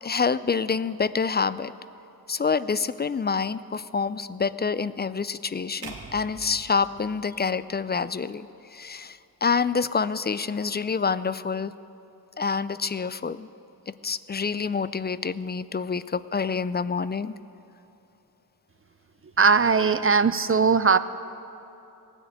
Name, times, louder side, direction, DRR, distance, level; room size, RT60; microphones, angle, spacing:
voice 1, 0.0-1.7 2.3-11.7 12.4-13.5 13.9-17.3, left 5 dB, 30° left, 16 dB, 0.3 m, -27 dB
sound 1, 5.8-8.1, right 4 dB, 75° right, 1.6 m, -44 dB
voice 2, 19.4-21.0, right 5 dB, 35° right, 13 dB, 0.4 m, -19 dB
17.5 x 9.9 x 7.9 m, 2.8 s
wide cardioid pair, 85°, 38 cm